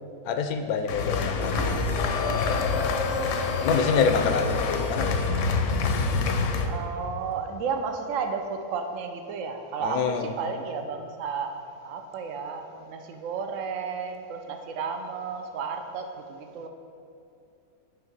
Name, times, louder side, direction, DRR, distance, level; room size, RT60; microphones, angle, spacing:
voice 1, 0.2-3.0 3.6-5.2 9.8-10.3, left 5 dB, 90° left, 7 dB, 1.1 m, -27 dB
sound 1, 0.9-6.7, left 4 dB, 65° left, 0.9 m, -26 dB
Shatter, 1.4-4.9, right 1 dB, 30° right, 1.0 m, -38 dB
voice 2, 6.6-16.7, right 5 dB, 70° right, 5 dB, 0.9 m, -33 dB
9.0 x 3.4 x 5.3 m, 2.7 s
omnidirectional pair, 1.5 m